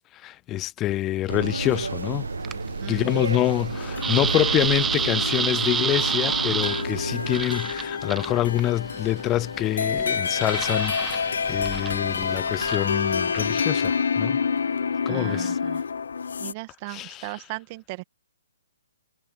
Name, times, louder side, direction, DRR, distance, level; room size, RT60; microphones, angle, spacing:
voice 1, 0.1-2.3 2.9-14.4 15.1-15.6 16.9-17.3, left 14 dB, 20° left, 0.3 m, -26 dB
sound 1, 1.3-7.5, right 3 dB, 90° right, 1.5 m, -31 dB
sound 2, 1.6-13.6, right 6 dB, 10° right, 0.7 m, -31 dB
voice 2, 2.8-3.4 15.1-15.8 16.4-18.0, right 25 dB, 35° right, 1.8 m, -37 dB
sound 3, 3.6-16.5, left 6 dB, 75° left, 1.1 m, -28 dB
hypercardioid pair, 140°, 0 cm